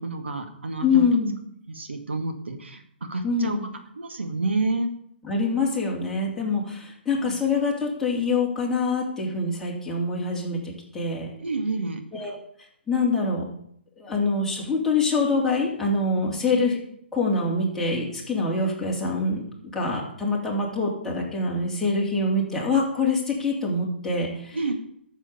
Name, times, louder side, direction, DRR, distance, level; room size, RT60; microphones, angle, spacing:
voice 1, 0.0-1.1 1.7-2.8 3.1-3.6 4.0-4.9 7.2-7.3 11.4-12.0 24.5-24.7, right 3 dB, 80° right, 5 dB, 2.2 m, -29 dB
voice 2, 0.8-1.4 3.2-3.7 5.2-11.3 12.1-12.3 12.9-13.4 14.0-16.8 17.1-19.4 19.7-24.6, left 3 dB, 5° left, -4 dB, 3.2 m, -25 dB
13.0 x 7.3 x 7.0 m, 0.69 s
figure-of-eight pair, 140°, 6 cm